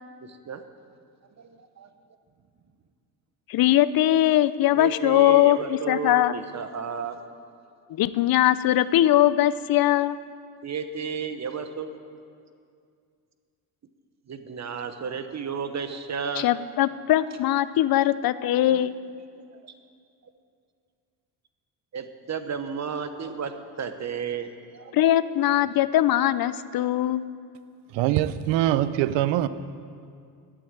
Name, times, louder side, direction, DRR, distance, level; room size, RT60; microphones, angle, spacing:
voice 1, 0.2-0.6 1.4-1.9 4.7-7.3 10.6-12.1 14.3-16.5 18.7-18.8 19.3-19.7 21.9-25.0, right 6 dB, 40° right, 1.0 m, -33 dB
voice 2, 3.5-6.4 7.9-10.2 16.4-18.9 24.9-27.3, left 13 dB, 55° left, 0.6 m, -21 dB
voice 3, 27.9-29.5, right 13 dB, 85° right, 0.7 m, -23 dB
11.0 x 8.7 x 8.8 m
cardioid pair, 85°, 43 cm